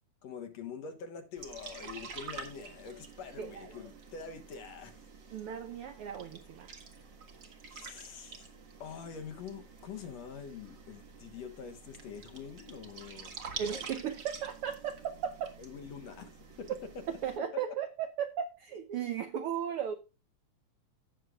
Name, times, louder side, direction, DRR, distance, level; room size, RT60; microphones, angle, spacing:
voice 1, 0.2-5.0 7.7-8.4 8.8-13.4 15.6-16.3 16.6-17.0 17.5-17.8, left 6 dB, 60° left, 2.3 m, -45 dB
sound 1, 1.4-17.4, right 5 dB, 45° right, 1.8 m, -48 dB
voice 2, 3.4-3.7 5.3-6.7 13.6-15.6 16.7-16.8 17.2-19.9, right 8 dB, 85° right, 1.2 m, -36 dB
16.5 x 6.5 x 2.4 m
omnidirectional pair, 3.6 m